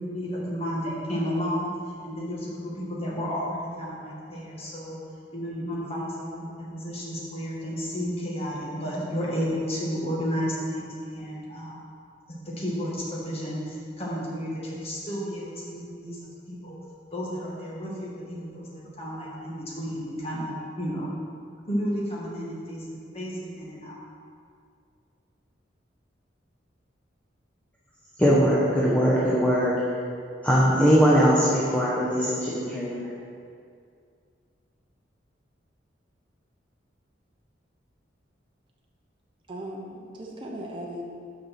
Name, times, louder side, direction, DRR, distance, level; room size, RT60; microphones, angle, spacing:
voice 1, 0.0-1.7 2.0-5.0 5.3-11.8 12.5-16.8 17.1-21.1 21.7-24.0, equal, 35° left, -6 dB, 1.9 m, -32 dB
voice 2, 28.2-29.8 30.4-33.1, equal, 10° left, -7 dB, 1.0 m, -21 dB
voice 3, 39.5-41.0, right 1 dB, 25° right, -2 dB, 0.8 m, -37 dB
6.5 x 5.4 x 6.0 m, 2.3 s
head